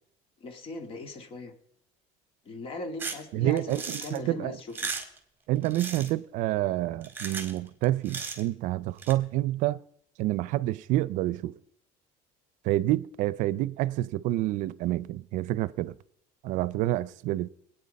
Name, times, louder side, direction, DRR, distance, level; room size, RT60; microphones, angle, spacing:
voice 1, 0.4-1.5 2.5-4.9, left 2 dB, 40° left, 2.2 m, -39 dB
sound 1, 3.0-3.2 3.6-4.2 4.6-5.2 5.6-6.1 7.0-7.6 7.8-8.5 9.0-9.1, right 4 dB, 15° right, 2.0 m, -36 dB
voice 2, 3.3-4.6 5.5-9.8 10.2-11.5 12.6-15.9 16.4-17.5, right 15 dB, 65° right, 0.5 m, -28 dB
22.0 x 9.0 x 5.4 m
cardioid pair, 145°, 14 cm